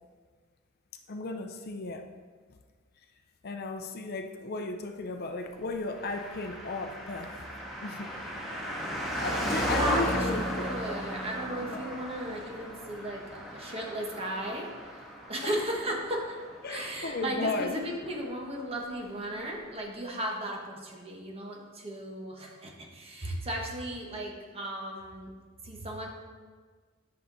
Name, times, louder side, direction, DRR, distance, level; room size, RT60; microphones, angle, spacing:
voice 1, 1.1-2.1 3.4-7.3 7.8-8.1 9.2-10.7 11.7-11.8 15.4-15.6 16.6-17.7, left 3 dB, 50° left, 6 dB, 0.6 m, -35 dB
Car passing by, 5.9-17.8 18.0-18.1, equal, ahead, 1.7 m, -36 dB
voice 2, 9.7-16.4 16.7-25.3 25.6-26.1, right 1 dB, 30° right, -1 dB, 1.2 m, -35 dB
10.0 x 5.7 x 4.0 m, 1.5 s
head